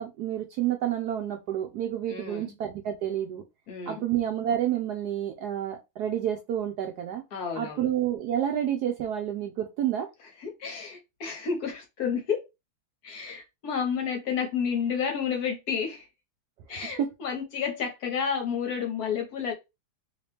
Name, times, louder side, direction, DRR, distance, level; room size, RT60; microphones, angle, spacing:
voice 1, 0.0-3.4 3.9-7.2 7.6-10.1 17.0-17.1, right 10 dB, 75° right, 0.9 m, -29 dB
voice 2, 2.1-2.5 3.7-4.1 7.3-7.9 10.4-12.4 13.0-16.1 16.7-19.5, left 6 dB, 60° left, 1.1 m, -31 dB
3.1 x 2.9 x 3.3 m
omnidirectional pair, 2.1 m